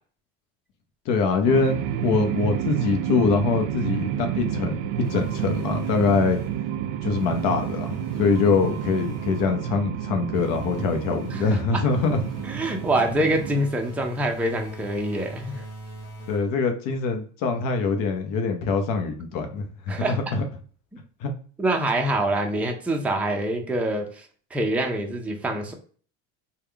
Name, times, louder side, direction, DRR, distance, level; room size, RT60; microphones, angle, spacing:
voice 1, 1.1-1.8 2.0-6.4 7.0-12.2 16.3-20.4 21.2-21.3, left 4 dB, 60° left, 5 dB, 0.8 m, -24 dB
sound 1, 1.4-13.7, right 10 dB, 65° right, 0.5 m, -30 dB
sound 2, 5.0-6.7 7.1-9.6 10.3-16.7, right 2 dB, 40° left, 1.4 m, -41 dB
voice 2, 12.5-15.6 19.9-20.1 21.6-24.2 24.5-25.7, right 1 dB, 5° right, 2 dB, 0.5 m, -25 dB
3.5 x 2.3 x 3.3 m, 0.43 s
supercardioid pair, 120°, 38 cm